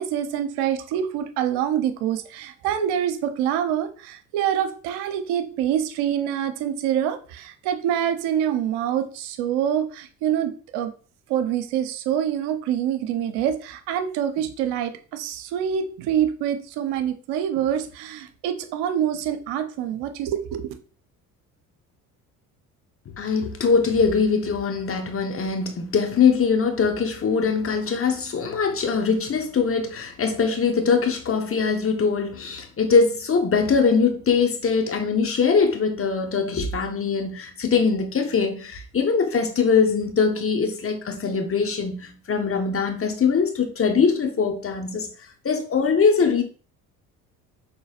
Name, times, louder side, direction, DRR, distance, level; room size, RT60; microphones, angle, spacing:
voice 1, 0.0-10.9 11.3-20.7, right 9 dB, 70° right, 0.8 m, -26 dB
voice 2, 23.1-45.1 45.4-46.4, left 5 dB, 30° left, 1.1 m, -22 dB
6.2 x 3.3 x 2.4 m
hypercardioid pair, 60°, 41 cm